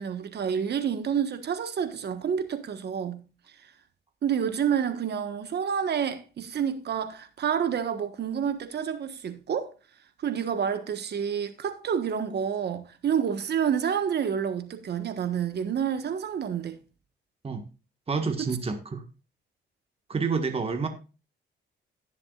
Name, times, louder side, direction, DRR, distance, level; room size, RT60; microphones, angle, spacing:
voice 1, 0.0-3.2 4.2-9.7 10.2-16.8, right 8 dB, 55° right, 1.4 m, -29 dB
voice 2, 18.1-19.0 20.1-20.9, right 4 dB, 30° right, 1.6 m, -28 dB
17.5 x 7.3 x 2.4 m
cardioid pair, 90°, 20 cm